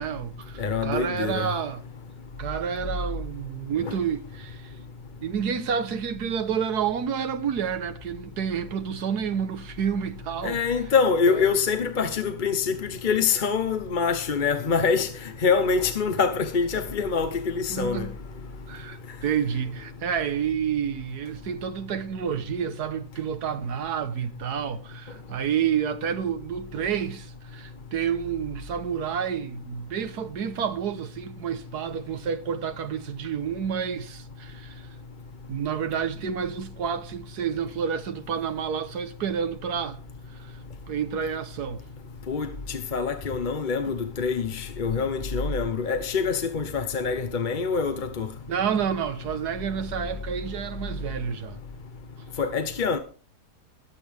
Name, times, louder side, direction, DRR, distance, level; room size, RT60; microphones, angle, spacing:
voice 1, 0.0-1.8 2.4-4.7 5.2-10.6 17.7-18.1 18.7-34.9 35.5-40.0 40.3-40.6 40.9-41.8 48.5-51.6, right 7 dB, 80° right, 1.6 m, -29 dB
voice 2, 0.6-1.5 3.8-4.0 10.4-18.1 42.3-48.3 52.4-53.0, left 5 dB, 40° left, 0.9 m, -25 dB
21.0 x 8.4 x 3.4 m
omnidirectional pair, 1.7 m